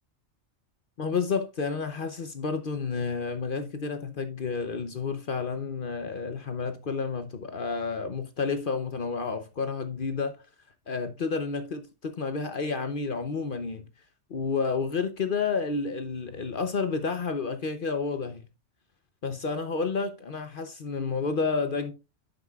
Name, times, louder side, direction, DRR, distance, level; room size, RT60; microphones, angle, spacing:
voice 1, 1.0-10.4 10.9-13.9 14.3-18.4 19.2-21.9, left 4 dB, 50° left, 0.9 m, -30 dB
10.5 x 7.8 x 2.3 m
omnidirectional pair, 1.2 m